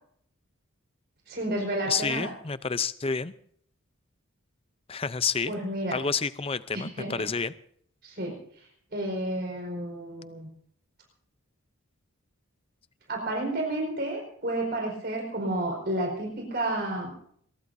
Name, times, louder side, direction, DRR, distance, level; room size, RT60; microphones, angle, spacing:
voice 1, 1.3-2.3 5.5-6.0 6.7-7.3 8.0-8.3 8.9-10.5 13.1-17.1, right 1 dB, 45° right, 4.8 m, -31 dB
voice 2, 1.9-3.3 4.9-5.5 5.9-7.5, left 5 dB, 25° left, 0.6 m, -29 dB
22.5 x 21.0 x 2.7 m
head